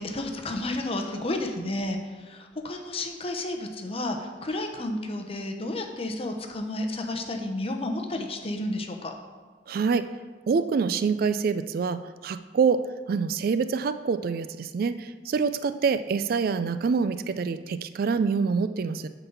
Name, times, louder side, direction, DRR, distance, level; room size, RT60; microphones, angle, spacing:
voice 1, 0.0-9.1, left 1 dB, 35° left, 4 dB, 0.9 m, -31 dB
voice 2, 9.7-10.1 10.5-12.8 13.1-19.1, right 5 dB, 55° right, 12 dB, 0.3 m, -26 dB
9.0 x 4.0 x 7.0 m, 1.4 s
head